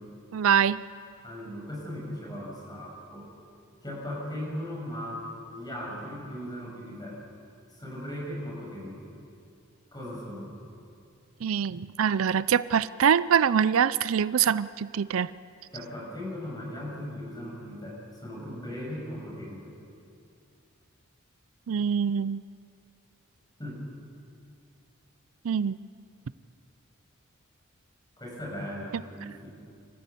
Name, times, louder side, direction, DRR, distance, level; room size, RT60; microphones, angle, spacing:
voice 1, 0.3-0.8 11.4-15.3 21.7-22.4 25.4-25.8, right 7 dB, 70° right, 17 dB, 0.4 m, -24 dB
voice 2, 1.2-3.3 3.8-7.2 7.7-9.1 9.9-10.6 15.7-19.8 23.6-23.8 28.2-29.5, equal, 20° left, -2 dB, 6.6 m, -38 dB
27.0 x 14.5 x 8.4 m, 2.4 s
head